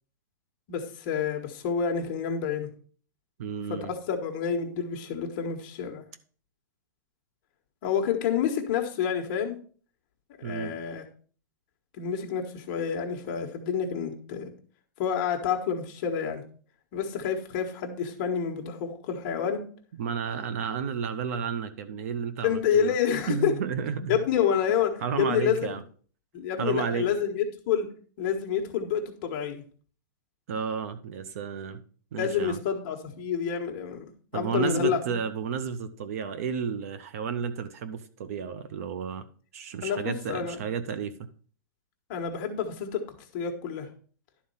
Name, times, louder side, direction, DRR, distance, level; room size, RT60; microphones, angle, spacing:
voice 1, 0.7-2.7 3.7-6.0 7.8-9.6 10.4-11.0 12.0-14.5 15.0-16.4 16.9-19.7 22.4-23.5 24.1-25.7 26.3-27.9 28.2-29.6 32.2-35.2 39.8-40.6 42.1-43.0 43.3-43.9, left 7 dB, 30° left, 3 dB, 1.3 m, -28 dB
voice 2, 3.4-3.9 10.4-10.7 20.0-22.9 23.3-24.2 25.0-25.8 26.6-27.1 30.5-31.8 32.1-32.6 34.3-39.3 39.5-41.1, right 6 dB, 45° right, 13 dB, 0.7 m, -32 dB
11.5 x 4.3 x 5.6 m, 0.43 s
supercardioid pair, 175°, 11 cm